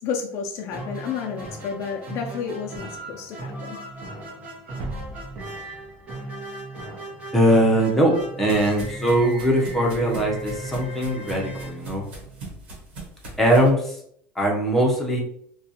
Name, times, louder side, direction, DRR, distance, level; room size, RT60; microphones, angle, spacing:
voice 1, 0.0-3.8, left 6 dB, 55° left, 3 dB, 0.3 m, -31 dB
sound 1, 0.7-12.6, right 2 dB, 25° right, 1.0 m, -36 dB
sound 2, 4.8-6.9, right 2 dB, 55° right, 0.5 m, -38 dB
voice 2, 7.3-12.0 13.4-13.9 14.4-15.2, right 1 dB, 5° left, -3 dB, 0.7 m, -21 dB
sound 3, 7.6-13.7, right 2 dB, 90° right, 1.0 m, -41 dB
2.4 x 2.2 x 2.8 m, 0.65 s
supercardioid pair, 135°, 6 cm